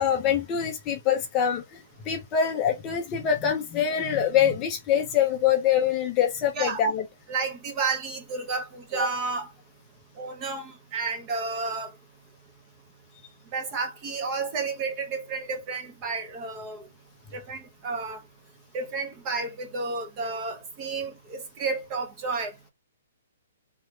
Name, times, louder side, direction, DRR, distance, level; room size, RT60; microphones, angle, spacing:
voice 1, 0.0-7.0, left 8 dB, 20° left, 0.7 m, -24 dB
voice 2, 7.3-9.5 10.2-11.9 13.5-16.9 17.3-18.2 18.7-22.5, right 4 dB, 20° right, 0.9 m, -31 dB
3.7 x 2.9 x 4.4 m
hypercardioid pair, 175°, 0 cm